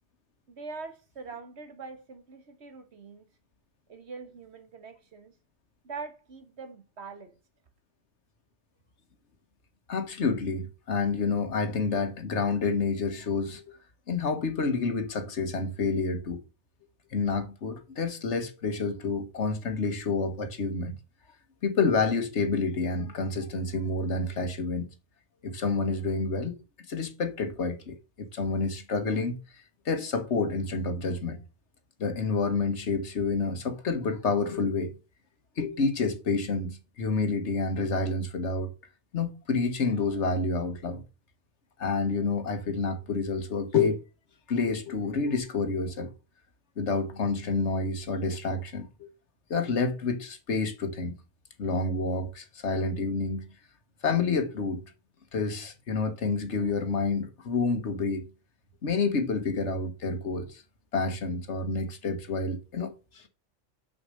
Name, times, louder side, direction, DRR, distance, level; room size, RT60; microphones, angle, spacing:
voice 1, 0.5-3.3 3.9-5.3 5.8-7.4, right 4 dB, 60° right, 1.5 m, -43 dB
voice 2, 9.9-13.8 14.1-16.4 17.1-21.0 21.6-24.9 25.4-26.6 26.9-29.4 29.8-31.4 32.0-34.9 35.6-38.7 39.1-41.0 41.8-44.0 44.5-46.1 46.8-49.1 49.5-51.1 51.6-53.4 54.0-54.8 55.3-58.3 58.8-60.6 60.9-63.3, left 4 dB, 70° left, 1.4 m, -29 dB
6.4 x 5.0 x 6.3 m
omnidirectional pair, 1.3 m